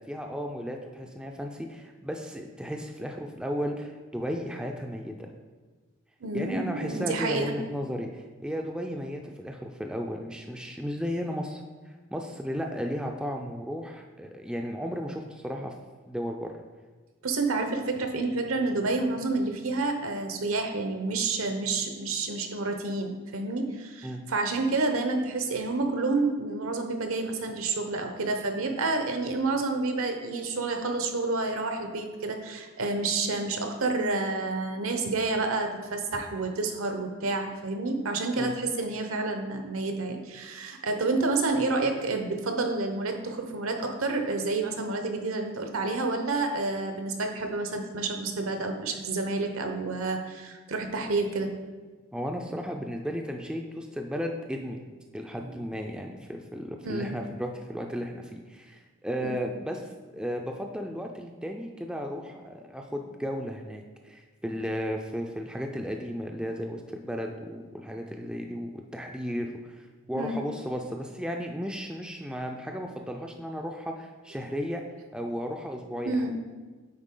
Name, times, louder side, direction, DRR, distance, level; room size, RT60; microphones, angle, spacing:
voice 1, 0.1-5.3 6.3-11.6 12.1-15.7 16.1-16.5 24.0-24.2 38.3-38.5 52.1-54.8 55.1-69.8 70.1-74.8 75.1-76.3, equal, 5° right, 2 dB, 0.3 m, -34 dB
voice 2, 6.2-7.6 17.2-51.5 56.8-57.1 59.2-59.4 70.2-70.4 76.0-76.4, right 3 dB, 80° right, 5 dB, 0.8 m, -29 dB
8.8 x 4.0 x 3.7 m, 1.4 s
head